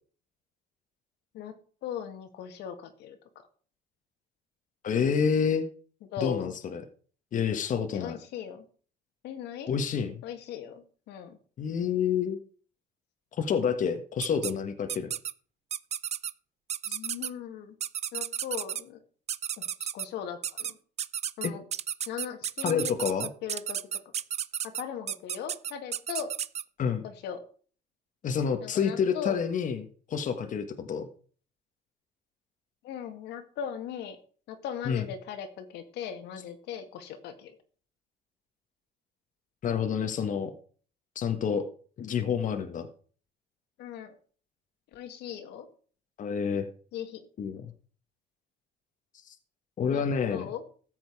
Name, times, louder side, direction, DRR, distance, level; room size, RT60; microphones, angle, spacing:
voice 1, 1.8-3.2 6.1-6.5 7.9-8.7 9.2-10.0 10.2-11.4 16.9-17.7 18.1-19.0 19.6-20.8 21.4-21.6 22.1-23.0 23.4-23.8 24.6-26.3 27.0-27.4 28.6-29.4 32.8-34.2 34.5-37.6 43.8-44.1 44.9-45.7 46.9-47.2 49.9-50.0 50.3-50.6, left 8 dB, 80° left, 6 dB, 2.0 m, -38 dB
voice 2, 4.8-5.7 6.2-6.8 7.3-8.2 9.7-10.2 11.6-12.4 13.4-15.1 16.9-17.0 21.4-21.5 22.6-23.3 26.8-27.0 28.2-31.1 34.9-35.0 39.6-40.5 41.1-41.6 42.0-42.9 46.2-46.7 47.4-47.7 49.2-49.3 49.8-50.5, left 7 dB, 50° left, 6 dB, 1.5 m, -28 dB
sound 1, 14.2-14.5 14.9-15.3 15.7-16.3 16.7-17.3 17.8-18.8 19.3-20.1 20.4-20.7 21.0-26.6, right 9 dB, 40° right, 0.5 m, -32 dB
14.0 x 8.0 x 4.7 m, 0.43 s
cardioid pair, 110°, 17 cm